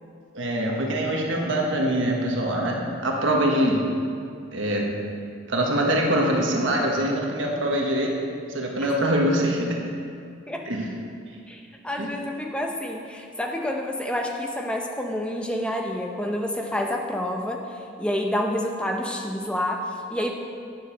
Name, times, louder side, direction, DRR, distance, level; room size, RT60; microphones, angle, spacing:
voice 1, 0.3-3.9 4.5-5.0 5.5-8.1 8.5-9.8 10.7-10.9 12.0-12.1, right 1 dB, 75° right, -1 dB, 1.4 m, -24 dB
voice 2, 11.5-20.3, left 1 dB, 5° left, 2 dB, 0.8 m, -28 dB
9.3 x 7.3 x 6.6 m, 2.3 s
head